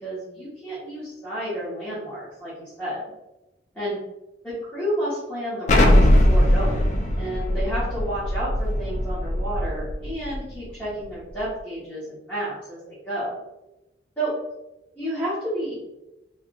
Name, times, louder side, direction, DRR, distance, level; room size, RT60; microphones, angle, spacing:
voice 1, 0.0-3.0 3.7-4.0 4.4-13.3 14.2-14.3 15.0-15.7, right 1 dB, 10° left, -13 dB, 1.2 m, -31 dB
Explosion, 5.7-10.4, left 1 dB, 45° left, 0.4 m, -20 dB
3.6 x 2.3 x 2.6 m, 0.98 s
head